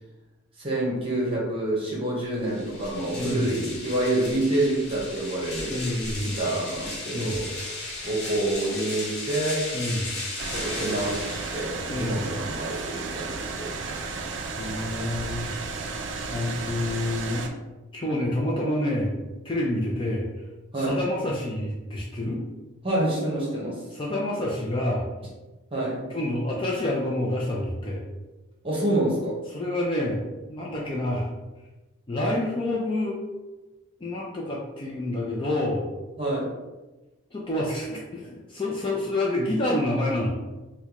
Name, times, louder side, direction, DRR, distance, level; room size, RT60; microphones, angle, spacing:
voice 1, 0.6-5.8 6.2-7.5 8.0-9.7 10.5-14.3 16.2-16.5 20.7-21.0 22.8-23.8 25.7-26.0 28.6-29.4 36.2-36.5, right 1 dB, 25° right, -5 dB, 1.0 m, -27 dB
sound 1, 2.4-12.0, left 2 dB, 50° left, 0.8 m, -36 dB
voice 2, 3.1-3.5 5.6-6.4 7.1-7.4 9.7-10.1 11.8-12.2 14.6-15.5 16.3-17.5 17.9-19.1 19.4-20.3 20.8-22.4 23.9-25.1 26.1-28.0 29.5-30.2 30.5-31.3 32.1-33.2 34.0-35.9 37.3-40.3, left 1 dB, 25° left, -3 dB, 0.4 m, -28 dB
sound 2, 10.4-17.5, right 4 dB, 55° right, 0.4 m, -33 dB
4.4 x 2.2 x 2.9 m, 1.1 s
head